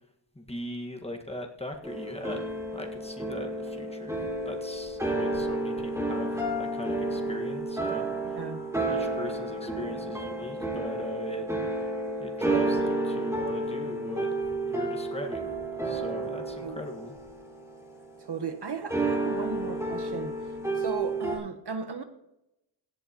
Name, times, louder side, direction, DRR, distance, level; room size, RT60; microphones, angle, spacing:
voice 1, 0.3-2.4 2.7-4.1 4.4-6.3 6.6-8.4 8.9-11.4 12.2-15.6 15.8-17.1, left 1 dB, 15° left, 2 dB, 1.6 m, -39 dB
sound 1, 1.8-18.2 18.9-21.4, right 2 dB, 5° right, 2.9 m, -31 dB
voice 2, 8.2-8.6 16.6-16.8 18.2-20.3 20.7-22.0, right 5 dB, 60° right, 8 dB, 1.1 m, -36 dB
17.0 x 11.0 x 3.0 m, 0.84 s
wide cardioid pair, 105°, 46 cm